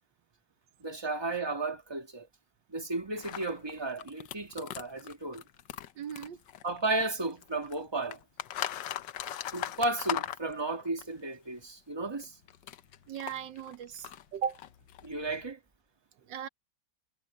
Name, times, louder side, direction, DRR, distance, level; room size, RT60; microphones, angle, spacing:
voice 1, 0.8-2.3 2.7-5.4 6.6-8.2 9.5-12.4 15.0-15.6, right 2 dB, 15° right, 1.9 m, -34 dB
sound 1, 3.2-7.1 7.4-11.0 12.2-15.5, left 11 dB, 90° left, 1.5 m, -39 dB
voice 2, 6.0-6.4 13.1-14.6 16.3-16.5, right 8 dB, 85° right, 1.7 m, -37 dB
omnidirectional pair, 1.9 m